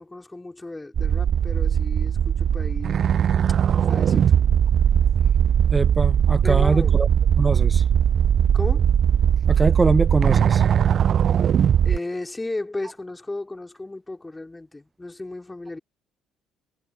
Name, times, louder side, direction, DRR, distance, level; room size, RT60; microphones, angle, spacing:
voice 1, 0.0-3.1 3.8-4.3 6.4-7.1 8.5-8.9 11.8-15.8, left 2 dB, 15° left, 3.9 m, -34 dB
sound 1, 1.0-12.0, right 9 dB, 50° right, 0.6 m, -19 dB
voice 2, 5.7-7.1 7.4-7.8 9.5-10.7, right 3 dB, 25° right, 1.0 m, -23 dB
hypercardioid pair, 50°, 0 cm